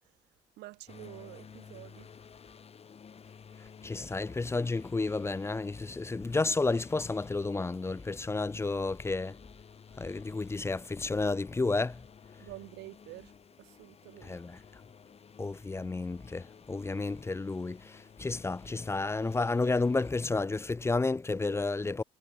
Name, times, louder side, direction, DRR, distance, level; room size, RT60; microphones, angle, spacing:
voice 1, 0.6-2.1 12.4-13.3 13.6-14.4, right 19 dB, 80° right, 0.8 m, -48 dB
sound 1, 0.9-20.1, left 6 dB, 35° left, 3.6 m, -54 dB
voice 2, 3.8-9.4 10.0-12.0 14.2-14.6 15.4-22.0, left 3 dB, 15° left, 0.7 m, -31 dB
cardioid pair, 110°, 17 cm